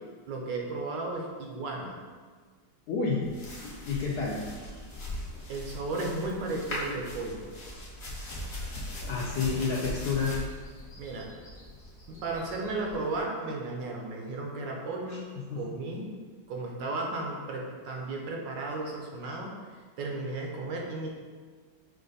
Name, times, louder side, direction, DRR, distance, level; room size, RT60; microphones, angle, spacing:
voice 1, 0.3-2.0 5.5-7.4 11.0-11.3 12.1-15.3 15.6-16.1 16.5-19.5 20.0-21.1, right 2 dB, 75° right, 0 dB, 1.2 m, -34 dB
voice 2, 2.9-3.3 3.9-4.4 9.1-10.3 15.5-15.6, left 5 dB, 75° left, -4 dB, 0.9 m, -29 dB
sound 1, 3.2-13.2, left 1 dB, 45° left, 1.0 m, -40 dB
5.1 x 2.5 x 3.9 m, 1.5 s
omnidirectional pair, 2.1 m